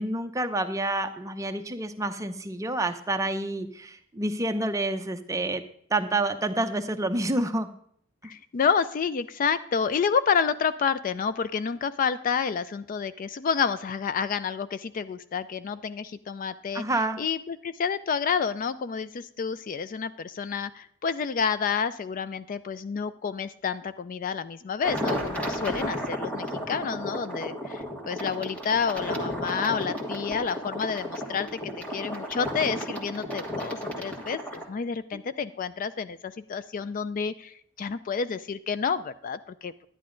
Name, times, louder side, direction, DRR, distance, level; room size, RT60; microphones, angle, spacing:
voice 1, 0.0-5.6 5.9-7.7 16.7-17.2 35.1-35.2, right 2 dB, 15° right, 7 dB, 0.6 m, -28 dB
voice 2, 8.2-16.8 17.2-31.6 31.9-39.9, left 6 dB, 40° left, 14 dB, 0.3 m, -29 dB
sound 1, 24.8-34.7, equal, 5° left, 1.5 m, -33 dB
10.5 x 10.0 x 3.8 m, 0.64 s
head